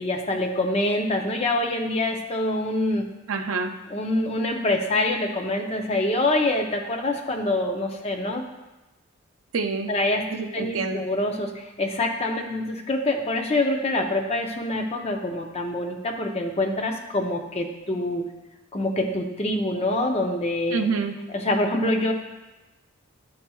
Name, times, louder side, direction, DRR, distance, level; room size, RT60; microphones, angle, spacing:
voice 1, 0.0-3.1 3.9-8.4 9.9-18.2 18.7-20.9 21.3-22.1, left 1 dB, 30° left, 2 dB, 0.6 m, -25 dB
voice 2, 3.3-3.7 9.5-9.9 10.3-11.0 20.7-21.1, right 4 dB, 70° right, 5 dB, 0.5 m, -26 dB
11.0 x 4.2 x 2.3 m, 1.1 s
head